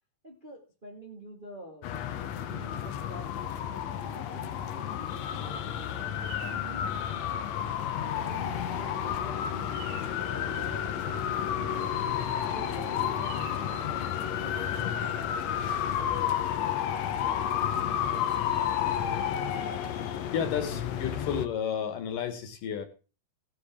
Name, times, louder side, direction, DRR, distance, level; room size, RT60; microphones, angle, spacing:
voice 1, 0.2-1.9 2.4-7.7 8.0-12.2 12.5-14.1 14.4-15.4, right 1 dB, 25° right, 0 dB, 1.2 m, -47 dB
sound 1, 1.8-21.5, left 9 dB, 80° left, 1.5 m, -31 dB
Bird vocalization bird call bird song, 5.7-16.3, right 7 dB, 75° right, 2.8 m, -51 dB
voice 2, 19.5-22.9, left 8 dB, 65° left, 8 dB, 3.0 m, -33 dB
17.0 x 10.0 x 3.6 m, 0.35 s
omnidirectional pair, 4.4 m